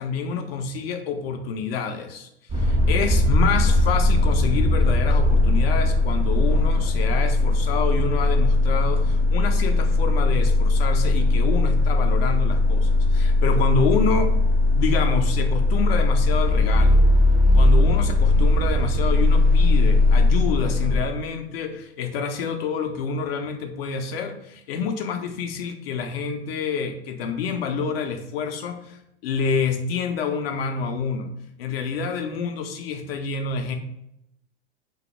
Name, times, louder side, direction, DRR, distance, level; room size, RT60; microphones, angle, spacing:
voice 1, 0.0-2.3 2.6-14.3 14.7-17.0 17.5-31.3 31.6-33.8, left 5 dB, 60° left, 6 dB, 0.5 m, -27 dB
sound 1, 2.5-21.0, left 2 dB, 15° right, 0.5 m, -19 dB
2.2 x 2.0 x 2.9 m, 0.79 s
hypercardioid pair, 100°, 33 cm